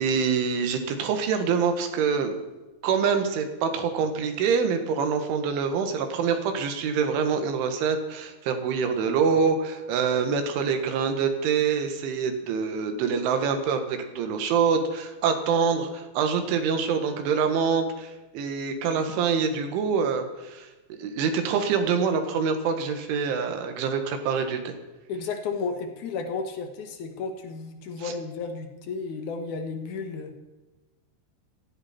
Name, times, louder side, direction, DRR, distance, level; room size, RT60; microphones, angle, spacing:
voice 1, 0.0-2.3 2.8-24.7 28.0-28.1, right 6 dB, 75° right, 7 dB, 3.9 m, -25 dB
voice 2, 25.1-30.3, left 4 dB, 65° left, 5 dB, 2.0 m, -33 dB
18.0 x 16.0 x 4.4 m, 1.1 s
omnidirectional pair, 5.7 m